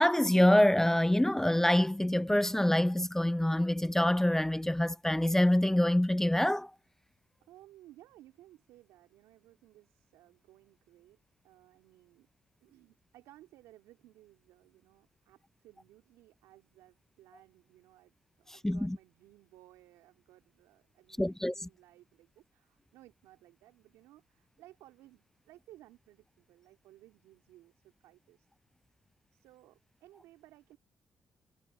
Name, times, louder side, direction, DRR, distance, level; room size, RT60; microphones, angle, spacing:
voice 1, 0.0-6.7 18.6-19.0 21.2-21.5, left 1 dB, 10° left, 0.4 m, -26 dB
voice 2, 7.4-11.2 11.4-12.3 12.6-28.5 29.3-30.8, right 15 dB, 85° right, 3.0 m, -59 dB
hypercardioid pair, 45°, 5 cm